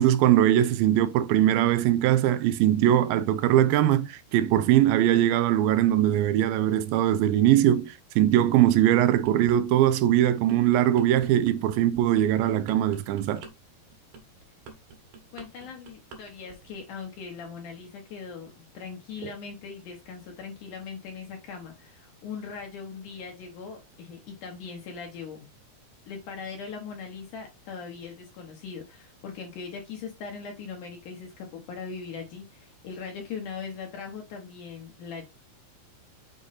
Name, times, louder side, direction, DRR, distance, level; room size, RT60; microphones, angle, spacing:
voice 1, 0.0-13.4 19.2-19.3, right 12 dB, 80° right, 2.3 m, -21 dB
sound 1, 9.0-9.6 10.0-16.2 16.5-16.8, right 4 dB, 65° right, 2.9 m, -46 dB
voice 2, 15.3-25.5 26.1-35.3, left 5 dB, 65° left, 2.2 m, -40 dB
6.5 x 4.3 x 4.0 m
omnidirectional pair, 4.4 m